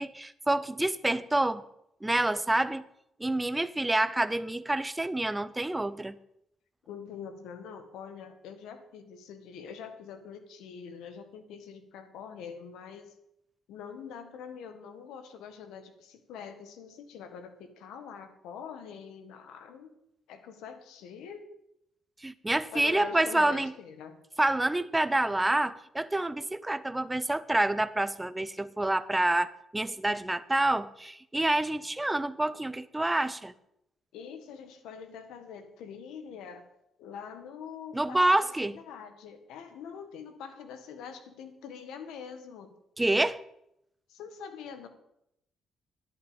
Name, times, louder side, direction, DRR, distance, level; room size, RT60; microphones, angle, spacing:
voice 1, 0.0-1.6 2.0-2.8 3.2-6.2 22.2-23.7 24.4-33.5 37.9-38.8 43.0-43.4, right 2 dB, 10° right, 16 dB, 0.7 m, -27 dB
voice 2, 6.9-13.1 13.7-20.0 20.3-21.5 22.7-24.2 34.1-36.7 37.0-42.7 44.1-44.9, left 7 dB, 90° left, 8 dB, 1.6 m, -44 dB
11.0 x 11.0 x 5.1 m, 0.79 s
cardioid pair, 90°, 0 cm